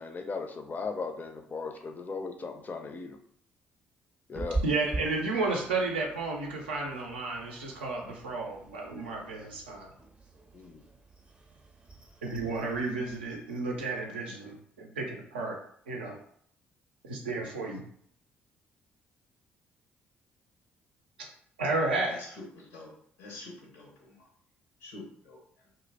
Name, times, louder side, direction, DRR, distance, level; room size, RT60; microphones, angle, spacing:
voice 1, 0.0-3.2 4.3-4.6 10.5-10.8, left 4 dB, 30° left, 5 dB, 0.4 m, -37 dB
Meow, 4.3-14.0, right 2 dB, 20° right, 0.5 m, -42 dB
voice 2, 4.6-9.9 12.2-15.6 15.9-16.2 17.0-17.8 21.6-22.2, right 3 dB, 80° right, 0 dB, 0.5 m, -32 dB
voice 3, 22.1-22.9 23.2-24.2 24.8-25.4, left 2 dB, 70° left, -1 dB, 0.6 m, -46 dB
2.2 x 2.0 x 3.2 m, 0.65 s
figure-of-eight pair, 45°, 5 cm